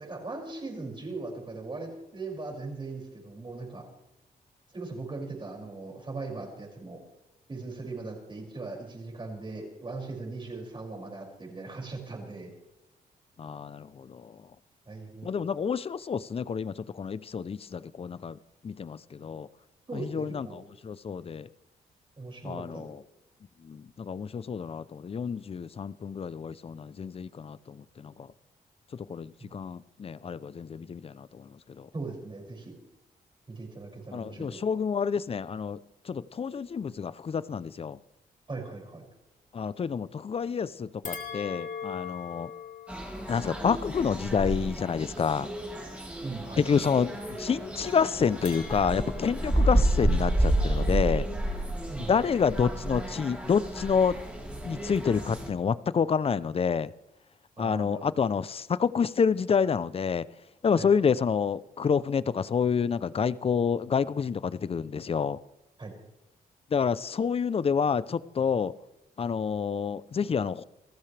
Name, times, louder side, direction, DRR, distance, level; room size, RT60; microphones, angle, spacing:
voice 1, 0.0-3.8 4.7-7.0 7.5-12.5 14.9-15.3 19.9-20.6 22.2-22.8 31.9-32.8 33.5-34.6 38.5-39.0 46.2-46.8 51.9-52.2 57.6-58.1 60.7-60.9 65.8-65.9, right 3 dB, 30° right, 6.2 m, -39 dB
voice 2, 13.4-14.4 15.2-18.4 18.6-19.5 19.9-21.5 22.4-23.0 23.6-28.3 28.9-31.5 31.8-31.9 34.1-35.8 36.1-38.0 39.5-42.5 43.3-45.5 46.6-51.3 52.0-54.2 54.6-56.9 57.6-60.3 60.6-65.4 66.7-68.7 69.2-70.6, left 6 dB, 40° left, 0.6 m, -28 dB
sound 1, 41.0-45.5 48.4-51.0, left 6 dB, 55° left, 2.6 m, -43 dB
sound 2, 42.9-55.5, right 1 dB, 10° right, 3.8 m, -30 dB
28.0 x 14.5 x 3.4 m
cardioid pair, 90°, 16 cm